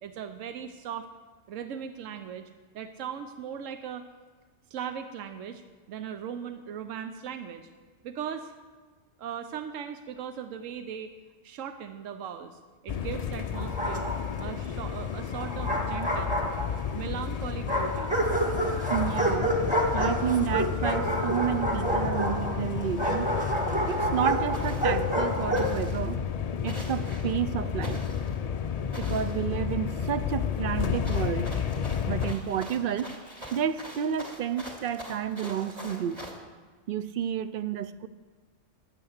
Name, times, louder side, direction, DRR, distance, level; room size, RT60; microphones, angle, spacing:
voice 1, 0.0-1.1 1.5-2.5 2.7-4.1 4.7-5.6 5.9-7.7 8.0-8.5 9.2-11.1 11.4-16.3 16.9-18.1, right 8 dB, 85° right, 8 dB, 1.1 m, -38 dB
sound 1, 12.9-32.3, left 7 dB, 65° left, 0.3 m, -32 dB
Bark, 13.5-14.4 15.4-17.0 17.7-25.8, right 1 dB, 5° right, 1.6 m, -29 dB
voice 2, 18.9-19.6 19.9-23.3 23.9-26.2 26.6-28.0 29.0-31.5 32.1-33.1 33.5-36.2 36.9-38.1, right 9 dB, 60° right, 13 dB, 0.6 m, -30 dB
sound 2, 23.9-24.0 24.5-25.0 25.5-26.1 26.7-27.3 27.8-28.4 28.9-29.4 31.0-36.3, equal, 30° right, 2.5 m, -43 dB
12.0 x 8.5 x 6.5 m, 1.4 s
omnidirectional pair, 1.3 m